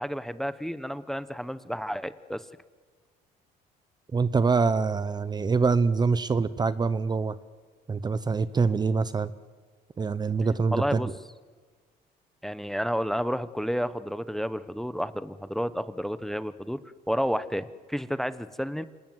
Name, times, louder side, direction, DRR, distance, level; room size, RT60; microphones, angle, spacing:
voice 1, 0.0-2.4 10.7-11.1 12.4-16.8 17.1-18.8, equal, ahead, 13 dB, 0.9 m, -31 dB
voice 2, 4.1-7.4 7.9-9.3 10.0-11.1, right 4 dB, 25° right, 15 dB, 0.8 m, -25 dB
27.0 x 19.5 x 7.9 m, 1.5 s
cardioid pair, 110°, 17 cm